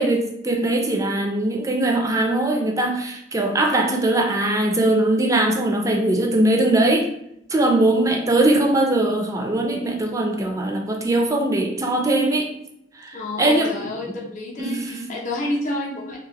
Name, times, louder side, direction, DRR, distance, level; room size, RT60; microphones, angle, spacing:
voice 1, 0.0-7.1 7.5-12.5 12.9-14.0 14.6-15.0, right 1 dB, 20° right, 1 dB, 0.4 m, -21 dB
voice 2, 7.7-8.0 13.1-16.2, left 2 dB, 45° left, -2 dB, 0.6 m, -29 dB
2.9 x 2.4 x 2.8 m, 0.76 s
head